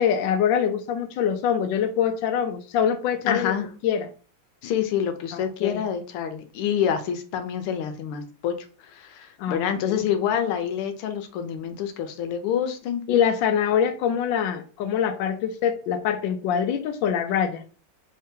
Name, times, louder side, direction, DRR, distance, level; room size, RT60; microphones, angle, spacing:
voice 1, 0.0-3.6 3.8-4.1 5.3-5.8 9.4-10.0 13.1-17.6, left 8 dB, 75° left, 1.2 m, -24 dB
voice 2, 3.3-3.7 4.6-13.0, left 8 dB, 90° left, 1.6 m, -27 dB
4.3 x 2.8 x 3.5 m
omnidirectional pair, 2.4 m